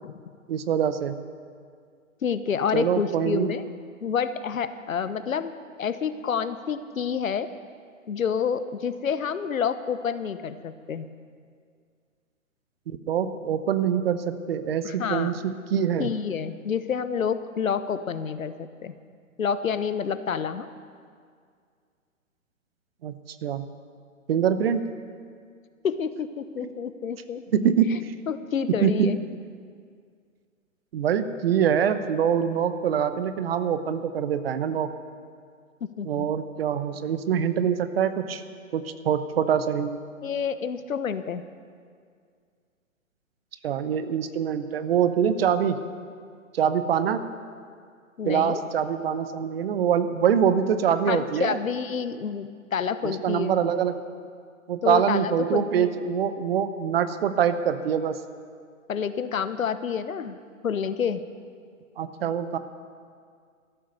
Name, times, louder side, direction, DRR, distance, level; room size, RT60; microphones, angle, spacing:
voice 1, 0.5-1.1 2.7-3.6 12.9-16.1 23.0-23.7 24.3-24.9 26.6-26.7 27.5-28.1 28.8-29.1 30.9-34.9 36.0-38.4 38.7-40.0 43.6-45.8 46.5-47.3 48.2-51.6 53.0-54.1 54.7-58.2 62.0-62.6, right 8 dB, 45° right, 12 dB, 0.9 m, -24 dB
voice 2, 2.2-3.6 4.0-5.5 5.8-7.5 8.1-11.1 14.8-15.3 16.0-18.9 19.4-20.7 25.8-27.4 27.9-28.0 28.3-29.2 35.8-36.3 40.2-41.4 48.2-48.6 51.1-53.6 54.8-55.9 58.9-60.4 60.6-61.2, left 7 dB, 75° left, 12 dB, 1.0 m, -28 dB
13.5 x 12.0 x 6.7 m, 2.1 s
figure-of-eight pair, 130°, 41 cm